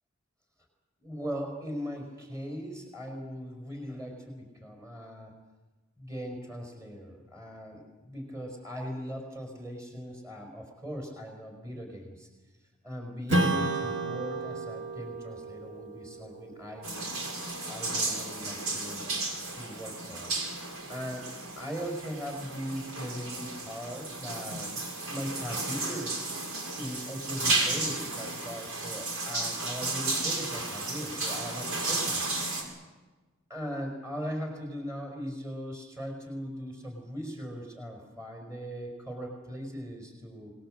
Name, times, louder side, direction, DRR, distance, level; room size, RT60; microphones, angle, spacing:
voice 1, 1.0-5.3 6.0-12.3 12.8-17.0 17.7-19.0 19.5-20.4 20.9-21.3 21.6-24.7 25.0-26.3 26.7-32.3 33.5-40.5, equal, 15° right, 2 dB, 5.2 m, -39 dB
Strum, 13.3-18.2, right 2 dB, 55° right, 2.4 m, -33 dB
sound 1, 16.8-32.6, right 2 dB, 75° right, 5.8 m, -33 dB
27.0 x 20.5 x 7.8 m, 1.2 s
head